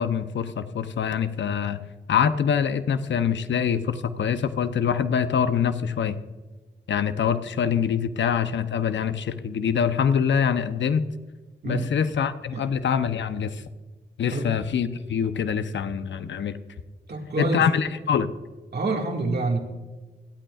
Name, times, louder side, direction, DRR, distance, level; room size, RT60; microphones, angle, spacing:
voice 1, 0.0-1.8 2.1-6.2 6.9-11.0 11.6-13.6 14.2-16.6 17.4-18.3, left 7 dB, 70° left, 11 dB, 0.8 m, -24 dB
voice 2, 17.1-17.8 18.7-19.6, right 2 dB, 60° right, 1 dB, 2.0 m, -27 dB
25.0 x 9.0 x 2.4 m, 1.3 s
supercardioid pair, 40°, 20 cm